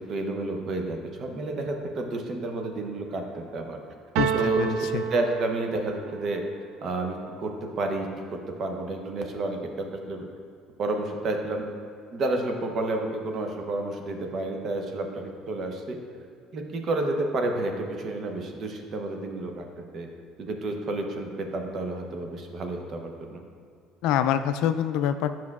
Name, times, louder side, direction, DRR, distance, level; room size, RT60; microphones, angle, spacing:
voice 1, 0.1-3.8 4.3-6.4 6.8-7.5 7.8-10.2 10.8-11.7 12.1-16.0 16.5-19.6 19.9-20.1 20.4-23.4, right 2 dB, 45° right, 3 dB, 0.8 m, -30 dB
voice 2, 4.2-5.0 24.0-25.4, left 9 dB, 75° left, 10 dB, 0.3 m, -26 dB
sound 1, 4.2-6.1, right 8 dB, 80° right, 0.3 m, -29 dB
9.7 x 5.9 x 2.4 m, 2.3 s
cardioid pair, 105°, 0 cm